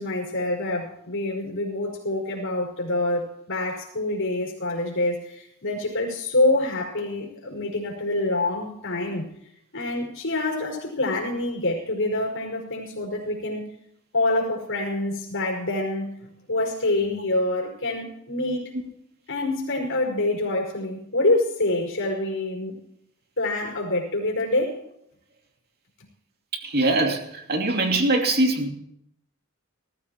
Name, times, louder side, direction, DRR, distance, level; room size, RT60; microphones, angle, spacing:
voice 1, 0.0-9.3 9.7-13.8 14.1-18.7 19.3-22.8 23.4-24.8, left 2 dB, 65° left, 5.0 m, -26 dB
voice 2, 26.5-28.7, right 2 dB, 50° right, 2.7 m, -22 dB
19.0 x 15.5 x 3.1 m
head